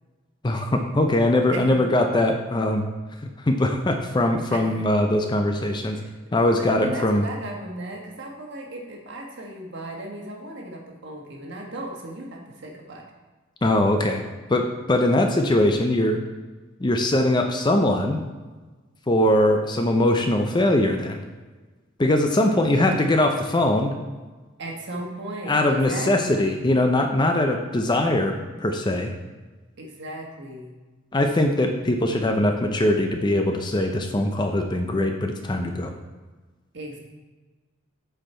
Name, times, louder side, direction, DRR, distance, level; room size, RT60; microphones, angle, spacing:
voice 1, 0.4-2.8 3.2-6.0 6.3-7.2 13.6-14.2 14.5-16.2 16.8-18.2 19.1-21.2 22.0-23.9 25.5-28.4 28.6-29.1 31.1-35.9, left 1 dB, 20° left, 4 dB, 0.5 m, -21 dB
voice 2, 6.0-13.0 22.6-23.0 24.6-26.6 29.8-30.8 36.7-37.0, right 1 dB, 55° right, 0 dB, 1.4 m, -36 dB
7.8 x 4.4 x 4.3 m, 1.3 s
head